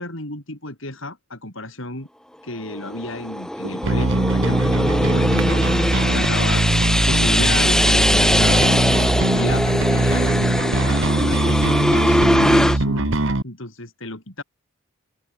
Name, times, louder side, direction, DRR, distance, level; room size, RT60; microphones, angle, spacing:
voice 1, 0.0-2.1 2.4-6.7 7.0-13.2 13.4-14.4, left 2 dB, 60° left, 5.4 m, -32 dB
sound 1, 2.6-3.0 3.6-4.5 5.4-5.6 6.0-6.1 6.6-6.7 7.2-8.1 8.4-8.5 9.0-9.2 9.6-9.7 10.2-10.4 10.8-11.6 12.0-12.1, right 2 dB, 75° right, 5.6 m, -39 dB
sound 2, 2.7-12.8, equal, 5° left, 1.2 m, -21 dB
Bass guitar, 3.8-13.4, right 2 dB, 55° right, 1.4 m, -21 dB
open air
head